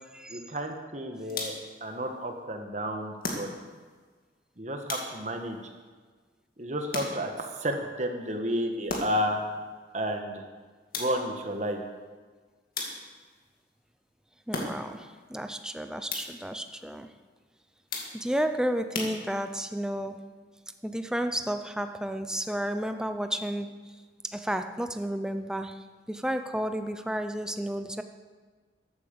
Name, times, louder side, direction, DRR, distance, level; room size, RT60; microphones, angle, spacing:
voice 1, 0.3-3.5 4.6-5.6 6.6-9.5 9.9-10.5 10.9-11.8, equal, 40° right, 4 dB, 1.5 m, -32 dB
sound 1, 1.3-1.8 3.2-3.9 4.9-5.5 6.9-7.5 8.9-9.4 10.9-11.5 12.7-13.3 14.5-15.1 16.1-16.6 17.9-18.4 18.9-19.7, left 2 dB, 50° left, 2.3 m, -36 dB
voice 2, 14.5-17.1 18.1-20.2 20.8-23.8 24.3-25.8 26.1-28.0, equal, 5° right, 8 dB, 0.5 m, -32 dB
14.0 x 8.8 x 7.0 m, 1.4 s
head